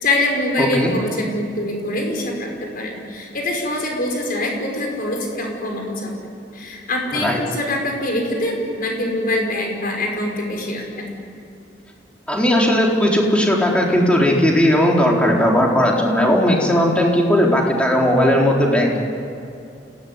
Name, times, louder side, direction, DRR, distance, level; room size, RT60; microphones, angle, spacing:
voice 1, 0.0-6.1 6.5-11.1, left 1 dB, 55° left, 1 dB, 6.0 m, -24 dB
voice 2, 0.6-0.9 7.1-7.4 12.3-19.0, equal, 5° left, -2 dB, 4.2 m, -17 dB
29.0 x 18.5 x 9.9 m, 2.7 s
head